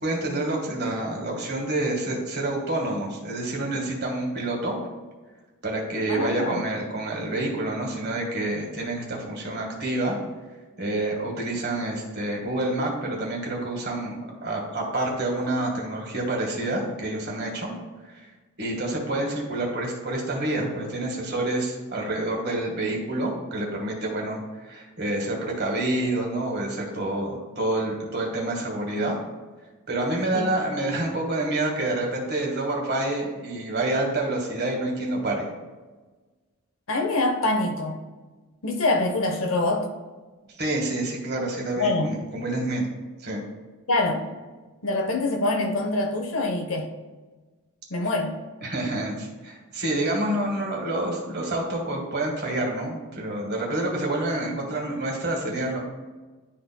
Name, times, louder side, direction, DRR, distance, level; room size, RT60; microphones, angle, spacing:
voice 1, 0.0-4.8 5.6-10.2 10.8-17.7 18.1-18.3 18.6-29.2 29.9-35.5 40.6-42.9 43.2-43.4 48.6-55.8, right 2 dB, 45° right, 0 dB, 1.6 m, -28 dB
voice 2, 6.1-6.6 30.3-30.5 36.9-38.0 38.6-39.9 41.8-42.1 43.9-44.2 44.8-46.9 47.9-48.3, left 2 dB, 65° left, 3 dB, 0.8 m, -25 dB
11.0 x 4.2 x 2.2 m, 1.3 s
head